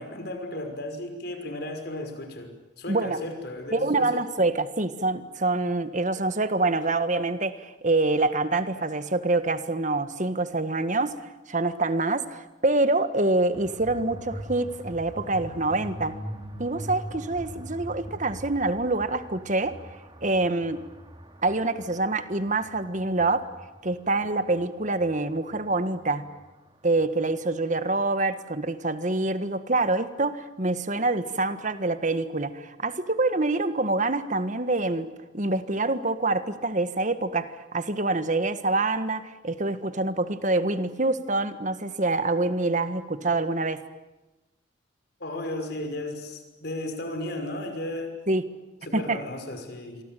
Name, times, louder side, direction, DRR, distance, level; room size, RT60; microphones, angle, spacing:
voice 1, 0.0-2.5 2.8-4.2 45.2-48.1 48.8-50.0, left 1 dB, 55° left, 5 dB, 5.7 m, -34 dB
voice 2, 2.9-3.2 3.7-11.2 11.5-16.2 16.6-19.8 20.2-20.8 21.4-23.5 23.8-26.2 26.8-43.8 48.3-48.4 48.9-49.2, right 2 dB, 40° right, 11 dB, 1.6 m, -26 dB
sound 1, 13.5-27.4, right 1 dB, 25° right, 2.8 m, -43 dB
27.5 x 23.5 x 9.2 m, 1.1 s
head